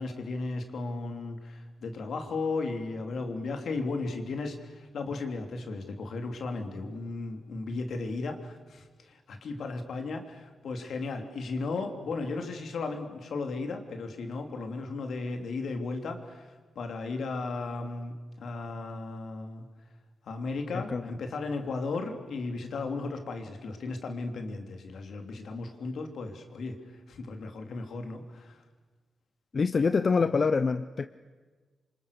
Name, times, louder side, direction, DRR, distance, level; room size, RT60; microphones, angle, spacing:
voice 1, 0.0-19.7 20.2-28.6, left 3 dB, 75° left, 5 dB, 3.2 m, -35 dB
voice 2, 29.5-31.1, left 4 dB, 45° left, 11 dB, 0.7 m, -25 dB
28.0 x 25.5 x 6.9 m, 1.4 s
cardioid pair, 105°, 0 cm